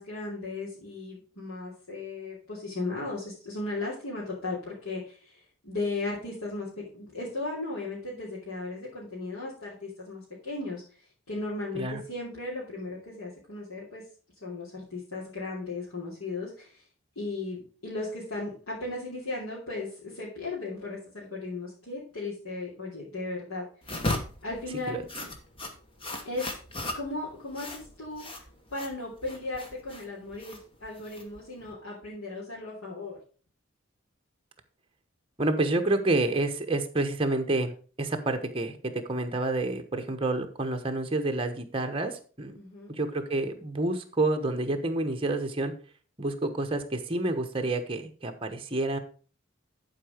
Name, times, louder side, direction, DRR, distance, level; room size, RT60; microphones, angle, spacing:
voice 1, 0.0-10.8 11.3-14.0 14.4-16.8 17.1-23.6 24.4-25.0 26.2-26.5 26.9-28.4 28.7-33.2 42.5-43.0, left 2 dB, 85° left, -8 dB, 3.1 m, -36 dB
sound 1, 23.8-31.7, left 2 dB, 25° left, 1.2 m, -37 dB
voice 2, 35.4-37.7 38.0-42.6 42.9-45.7 46.2-49.0, right 2 dB, 25° right, 5 dB, 1.1 m, -28 dB
11.0 x 4.8 x 5.0 m, 0.40 s
head